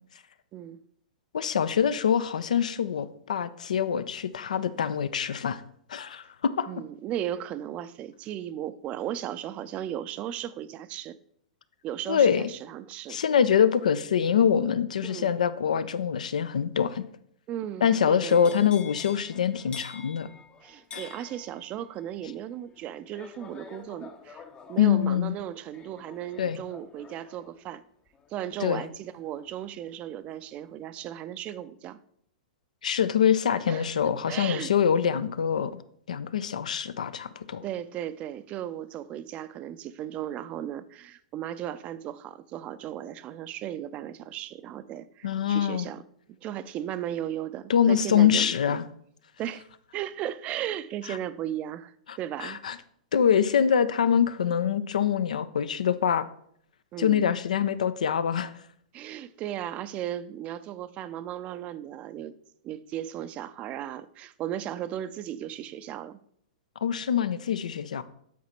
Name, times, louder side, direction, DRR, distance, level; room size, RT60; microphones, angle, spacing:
voice 1, 1.3-5.6 5.9-6.7 12.1-12.4 13.1-17.0 17.8-20.3 20.9-21.0 24.8-25.3 26.4-26.6 28.6-28.8 32.8-35.7 36.1-37.6 45.2-45.9 47.7-48.8 51.1-51.2 52.1-52.8 53.1-56.2 57.0-58.5 66.8-68.0, left 8 dB, 75° left, 0.5 m, -24 dB
voice 2, 6.7-11.2 11.8-13.2 15.0-15.3 17.5-18.7 20.6-24.4 24.7-27.8 28.3-32.0 33.7-33.9 34.3-34.7 37.6-46.0 46.3-48.8 49.4-49.6 49.9-52.6 56.9-57.2 58.9-62.3 62.6-66.2, right 11 dB, 35° right, 0.5 m, -36 dB
sound 1, 18.3-30.2 30.6-31.0, left 5 dB, 25° left, 0.7 m, -48 dB
8.4 x 4.1 x 4.4 m
hypercardioid pair, 110°, 4 cm